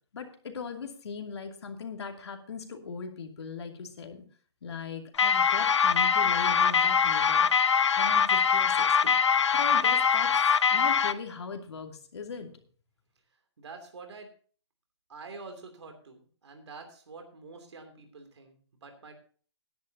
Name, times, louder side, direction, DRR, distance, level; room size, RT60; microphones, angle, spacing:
voice 1, 0.1-4.2 4.6-7.5 8.0-9.2 9.5-10.4 10.7-12.5, left 5 dB, 70° left, 4 dB, 2.5 m, -39 dB
sound 1, 5.2-11.1, left 6 dB, 90° left, 0.8 m, -23 dB
voice 2, 13.6-14.3 15.1-19.1, right 4 dB, 75° right, 5 dB, 3.0 m, -47 dB
17.5 x 10.5 x 2.8 m, 0.43 s
hypercardioid pair, 170°, 14 cm